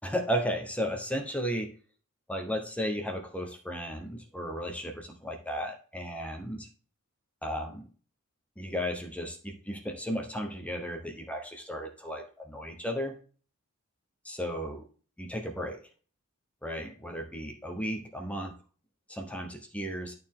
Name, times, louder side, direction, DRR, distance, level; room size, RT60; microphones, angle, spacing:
voice 1, 0.0-1.7 2.3-6.7 7.4-7.8 8.6-13.1 14.2-14.8 15.2-15.8 16.6-18.5 19.1-20.1, equal, 5° left, 3 dB, 1.0 m, -34 dB
11.0 x 4.4 x 3.7 m, 0.40 s
head